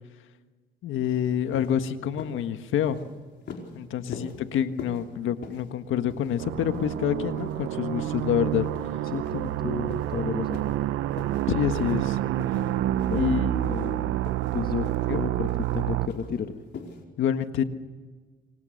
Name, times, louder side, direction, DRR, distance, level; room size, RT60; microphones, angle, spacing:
voice 1, 0.8-3.0 3.7-8.6 11.5-12.2 13.1-13.7 15.1-15.3 17.2-17.6, left 9 dB, 80° left, 9 dB, 1.6 m, -27 dB
sound 1, 1.0-1.2 1.5-1.8 2.2-2.4 2.8-3.1 3.5-3.8 4.1-4.4 4.8-5.1 5.4-5.7 6.1-6.5 6.7-7.0 7.4-7.5 8.0-8.3 8.6-8.9 9.2-9.6 9.9-10.1 10.5-10.8 11.1-11.5 11.7-12.1 12.4-12.7 13.0-13.3 13.6-13.9 14.2-14.6 14.8-15.1 15.5-15.7 16.1-16.4 16.7-17.0, left 5 dB, 65° left, 4.7 m, -42 dB
sound 2, 6.4-16.1, right 13 dB, 90° right, 0.9 m, -28 dB
voice 2, 9.0-10.7 13.0-14.3 14.5-16.6, left 6 dB, 50° left, 6 dB, 1.6 m, -33 dB
29.0 x 25.0 x 6.6 m, 1.4 s
cardioid pair, 90°, 20 cm